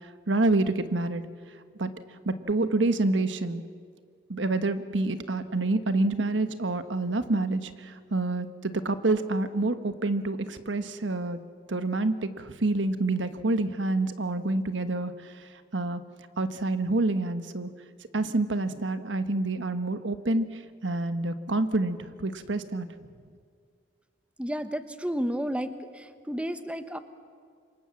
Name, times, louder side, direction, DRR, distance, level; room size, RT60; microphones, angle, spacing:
voice 1, 0.3-1.2 1.8-1.9 2.2-3.6 4.3-11.4 11.7-15.3 15.7-16.0 16.4-17.7 18.1-22.9, right 2 dB, 90° right, 10 dB, 1.2 m, -27 dB
voice 2, 24.4-27.0, equal, 5° right, 10 dB, 1.0 m, -32 dB
27.5 x 24.5 x 7.5 m, 2.1 s
head